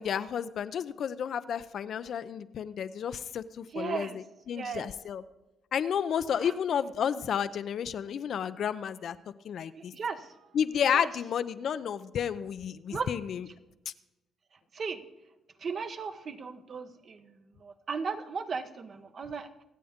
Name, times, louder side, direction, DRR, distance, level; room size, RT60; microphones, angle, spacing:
voice 1, 0.0-5.2 5.7-9.2 9.4-9.9 10.5-13.5, left 8 dB, 65° left, 13 dB, 0.6 m, -31 dB
voice 2, 3.7-4.2 4.5-4.9 6.4-6.5 9.9-10.3 10.9-11.1 12.9-13.1 14.7-15.0 15.6-17.2 17.6-19.5, right 5 dB, 50° right, 8 dB, 1.1 m, -36 dB
24.5 x 8.4 x 3.6 m, 1.0 s
cardioid pair, 90°, 0 cm